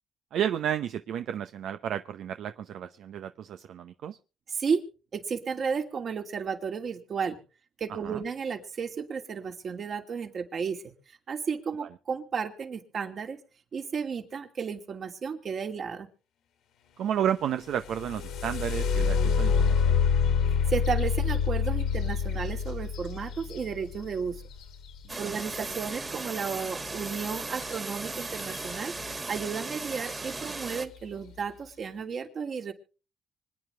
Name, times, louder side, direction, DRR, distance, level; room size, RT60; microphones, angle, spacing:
voice 1, 0.3-4.2 7.9-8.2 17.0-19.9 25.2-25.3, right 9 dB, 75° right, 9 dB, 0.7 m, -32 dB
voice 2, 4.5-4.8 5.1-7.4 7.8-13.4 13.7-16.1 20.7-24.4 25.2-32.7, right 6 dB, 55° right, 5 dB, 2.6 m, -33 dB
sound 1, 17.7-25.5 27.6-27.7 28.2-28.7 29.3-29.4 30.0-30.3, left 6 dB, 85° left, 2.6 m, -27 dB
sound 2, 25.1-30.9, right 3 dB, 25° right, 2.1 m, -37 dB
25.5 x 9.5 x 3.3 m, 0.36 s
cardioid pair, 90°, 0 cm